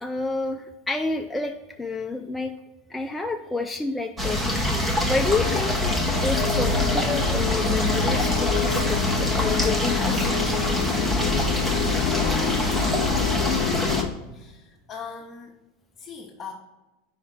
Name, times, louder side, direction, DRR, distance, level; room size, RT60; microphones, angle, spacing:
voice 1, 0.0-2.5 2.9-4.4 4.7-10.3, left 3 dB, 10° left, 3 dB, 0.4 m, -29 dB
sound 1, 4.2-14.0, left 1 dB, 15° right, 1.0 m, -24 dB
sound 2, 5.2-14.1, left 10 dB, 60° left, 0.5 m, -28 dB
voice 2, 14.3-15.5 16.0-16.5, left 6 dB, 30° left, -3 dB, 0.9 m, -40 dB
4.9 x 4.3 x 5.8 m, 1.1 s
hypercardioid pair, 110°, 0 cm